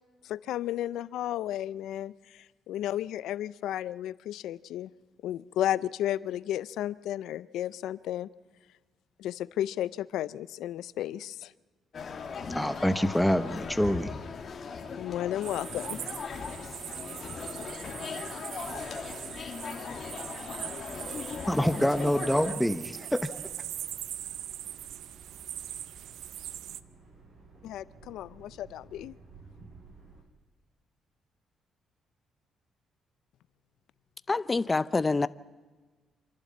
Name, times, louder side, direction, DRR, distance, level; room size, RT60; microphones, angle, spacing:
voice 1, 0.3-2.1 2.7-4.9 5.2-8.3 9.2-11.5 15.0-16.0 27.6-29.2, left 12 dB, 85° left, 0.5 m, -33 dB
sound 1, 11.9-22.5, left 5 dB, 50° left, 2.4 m, -39 dB
voice 2, 12.5-14.2 21.5-23.3, equal, 5° left, 1.0 m, -26 dB
sound 2, 15.4-26.8, right 11 dB, 80° right, 0.6 m, -41 dB
sound 3, 23.2-30.2, right 3 dB, 55° right, 6.4 m, -54 dB
voice 3, 34.3-35.3, left 3 dB, 25° left, 0.6 m, -26 dB
27.0 x 11.5 x 8.5 m
cardioid pair, 90°, 0 cm